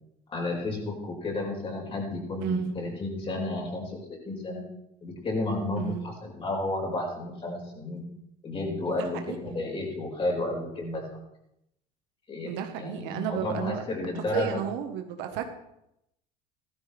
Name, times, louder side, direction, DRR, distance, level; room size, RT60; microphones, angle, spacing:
voice 1, 0.3-4.6 5.0-8.0 8.4-11.0 12.3-14.6, left 2 dB, 30° left, -1 dB, 5.3 m, -32 dB
voice 2, 2.4-2.7 5.8-6.0 9.2-9.4 12.5-13.8 14.1-15.5, right 9 dB, 70° right, 6 dB, 1.5 m, -32 dB
15.0 x 13.5 x 3.5 m, 0.82 s
supercardioid pair, 100°, 18 cm